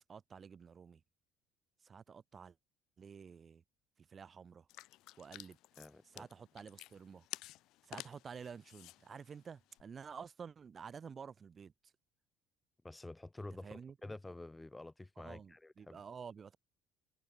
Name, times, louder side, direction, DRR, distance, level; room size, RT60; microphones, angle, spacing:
voice 1, 0.1-1.0 1.8-2.5 3.0-3.6 4.1-4.6 5.2-5.6 6.1-7.2 7.9-11.7 13.6-13.9 15.2-16.6, right 6 dB, 30° right, 0.8 m, -50 dB
sound 1, 4.7-9.8, left 17 dB, 65° left, 2.1 m, -52 dB
voice 2, 5.8-6.3 12.8-16.0, left 2 dB, 10° left, 0.8 m, -49 dB
cardioid pair, 145°, 0 cm